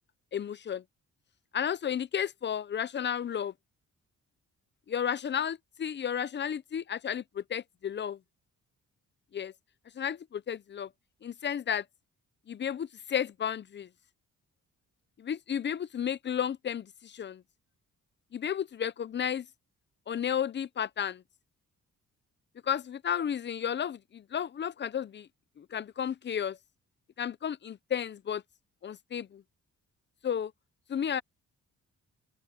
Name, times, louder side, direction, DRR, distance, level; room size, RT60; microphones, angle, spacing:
voice 1, 0.3-0.8 1.5-3.5 4.9-8.2 9.3-9.5 10.0-10.9 11.2-11.8 12.5-13.9 15.2-17.4 18.3-19.5 20.1-21.2 22.6-25.3 25.6-26.6 27.2-28.4 28.8-29.4 30.2-30.5 30.9-31.2, left 8 dB, 35° left, 0.5 m, -33 dB
open air
cardioid pair, 125°, 30 cm